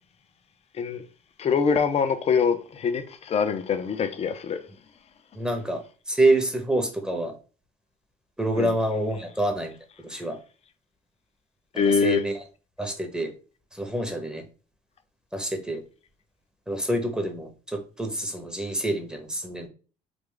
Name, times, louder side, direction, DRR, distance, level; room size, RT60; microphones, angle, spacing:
voice 1, 1.4-4.7 8.6-8.7 11.8-12.2, left 6 dB, 40° left, 0.5 m, -24 dB
voice 2, 5.3-7.3 8.4-9.7 10.0-10.4 12.0-12.3 12.8-13.3 13.7-14.4 15.3-15.8 16.7-19.7, right 1 dB, 5° right, 0.8 m, -27 dB
3.3 x 2.2 x 3.7 m
cardioid pair, 95°, 16 cm